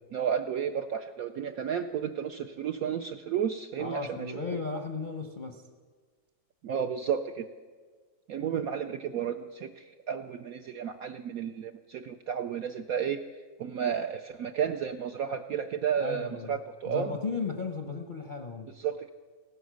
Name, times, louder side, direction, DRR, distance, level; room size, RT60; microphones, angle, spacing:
voice 1, 0.1-4.6 6.6-7.5 8.3-13.2 13.6-17.1 18.7-19.1, right 8 dB, 70° right, 7 dB, 0.8 m, -32 dB
voice 2, 3.8-5.6 16.0-16.6 16.9-18.7, left 4 dB, 45° left, 5 dB, 0.6 m, -35 dB
16.0 x 12.0 x 6.3 m, 1.5 s
omnidirectional pair, 2.1 m